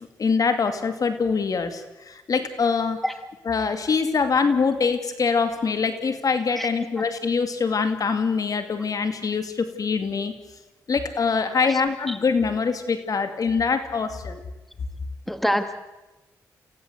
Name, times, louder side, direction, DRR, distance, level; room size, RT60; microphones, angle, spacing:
voice 1, 0.2-3.0 3.4-10.3 10.9-14.4, left 5 dB, 55° left, 9 dB, 2.5 m, -24 dB
voice 2, 15.3-15.8, equal, ahead, 9 dB, 2.1 m, -25 dB
28.5 x 16.5 x 8.0 m, 1.1 s
cardioid pair, 65°, 7 cm